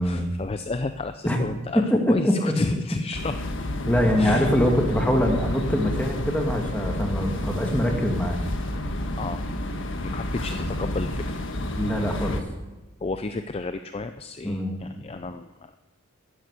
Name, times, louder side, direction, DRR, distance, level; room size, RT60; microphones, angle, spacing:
voice 1, 0.0-3.4 4.2-4.5 9.2-9.4 10.0-11.4 13.0-15.8, left 3 dB, 25° left, 9 dB, 0.5 m, -32 dB
voice 2, 1.7-2.5 3.9-8.4 11.8-12.4 14.4-14.8, equal, 5° left, 2 dB, 2.0 m, -23 dB
sound 1, 3.1-12.4, left 1 dB, 60° left, 1.5 m, -30 dB
12.5 x 11.0 x 8.2 m, 1.1 s
head